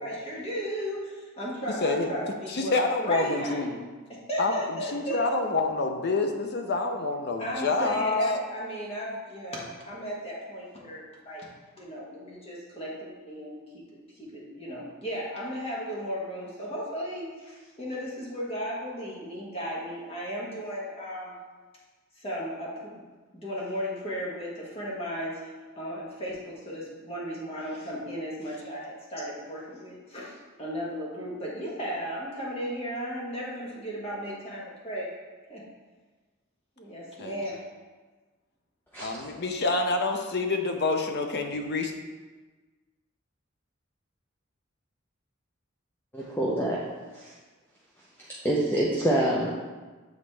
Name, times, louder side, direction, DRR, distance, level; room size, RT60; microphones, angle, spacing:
voice 1, 0.0-3.7 4.1-5.2 7.4-11.4 11.8-13.9 14.2-21.4 22.2-23.0 23.3-35.1 35.5-35.6 36.8-37.5, equal, 30° left, -5 dB, 1.2 m, -35 dB
voice 2, 1.8-2.1 2.5-3.8 4.4-4.5 4.9-8.4 37.2-37.4 39.0-41.9, left 3 dB, 55° left, 4 dB, 0.6 m, -27 dB
voice 3, 38.9-39.3 46.1-46.8 47.1-47.3 48.2-49.5, right 1 dB, 10° left, -5 dB, 0.6 m, -27 dB
7.2 x 4.0 x 3.3 m, 1.3 s
head